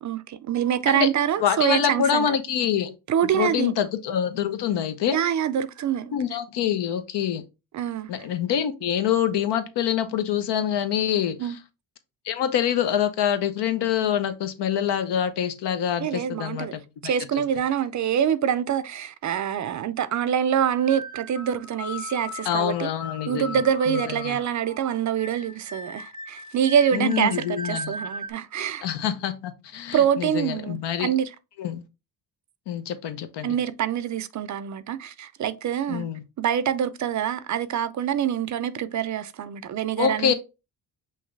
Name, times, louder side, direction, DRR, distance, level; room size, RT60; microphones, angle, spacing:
voice 1, 0.0-2.3 3.1-3.8 5.1-6.1 7.7-8.1 11.4-11.6 16.0-16.7 17.0-22.9 23.3-28.9 29.9-31.3 33.4-36.1 36.4-40.3, right 9 dB, 45° right, 0.4 m, -25 dB
voice 2, 1.4-2.9 3.3-5.2 6.1-7.4 8.1-11.5 12.2-17.1 22.4-23.6 23.9-24.4 26.9-27.9 28.8-31.1 31.6-31.8 32.7-33.5 35.9-36.2 40.0-40.3, left 9 dB, 85° left, 0.8 m, -25 dB
sound 1, 20.7-28.3, left 2 dB, 15° left, 0.8 m, -38 dB
5.6 x 2.6 x 3.2 m
cardioid pair, 115°, 41 cm